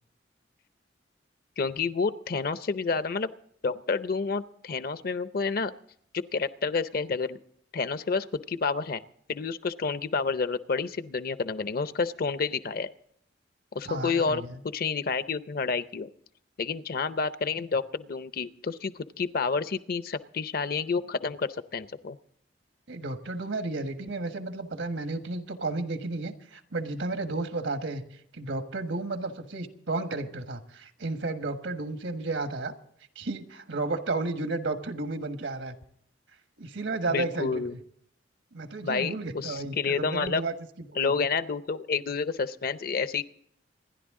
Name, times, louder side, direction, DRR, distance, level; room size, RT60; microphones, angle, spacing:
voice 1, 1.6-3.3 3.6-5.7 6.1-7.4 7.7-9.0 9.3-12.9 13.7-14.4 14.7-16.1 16.6-22.2 37.1-37.8 38.8-40.4 41.0-43.2, left 4 dB, 50° left, 14 dB, 0.6 m, -29 dB
voice 2, 13.8-14.6 22.9-28.0 28.3-32.7 33.1-35.8 36.6-37.8 38.5-40.5 40.9-41.2, right 3 dB, 85° right, 7 dB, 1.4 m, -33 dB
27.0 x 11.0 x 3.7 m, 0.67 s
head